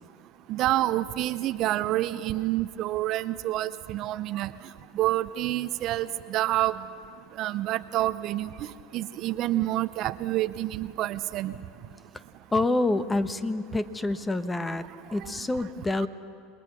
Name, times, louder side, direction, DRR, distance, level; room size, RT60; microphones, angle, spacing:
voice 1, 0.5-4.5 4.9-6.7 7.4-8.5 8.9-11.5 15.2-15.3 15.9-16.1, right 15 dB, 50° right, 13 dB, 0.8 m, -28 dB
voice 2, 12.5-14.8 15.1-16.1, left 2 dB, 15° left, 12 dB, 1.2 m, -27 dB
28.5 x 21.0 x 6.3 m, 2.4 s
hypercardioid pair, 80°, 0 cm